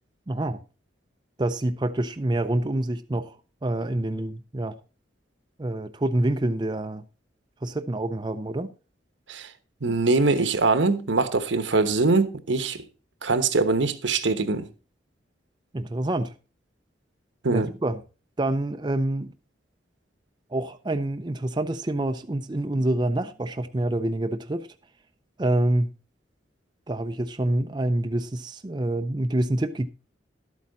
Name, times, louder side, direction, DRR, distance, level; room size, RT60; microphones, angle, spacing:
voice 1, 0.3-0.6 1.4-3.4 3.6-4.8 5.6-7.0 7.6-8.7 15.7-16.3 17.5-18.0 18.4-19.3 20.5-24.7 25.4-25.9 26.9-29.9, right 1 dB, 25° right, 0.5 m, -26 dB
voice 2, 9.8-12.8 13.2-14.7 17.4-17.7, right 3 dB, 80° right, 1.1 m, -23 dB
12.5 x 8.4 x 4.0 m
head